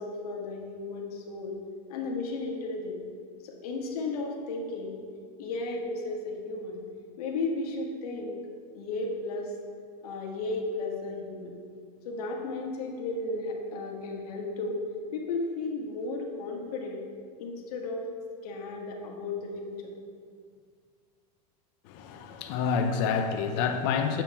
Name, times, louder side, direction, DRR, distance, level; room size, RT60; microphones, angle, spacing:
voice 1, 0.0-1.6 1.9-3.0 3.4-5.0 5.4-6.8 7.2-8.4 8.7-9.5 10.0-11.5 12.0-14.8 15.1-17.0 17.4-18.1 18.4-19.9, left 3 dB, 70° left, 0 dB, 1.3 m, -34 dB
voice 2, 21.8-24.2, left 6 dB, 40° left, 6 dB, 0.6 m, -28 dB
8.9 x 7.2 x 2.9 m, 2.1 s
supercardioid pair, 160°, 20 cm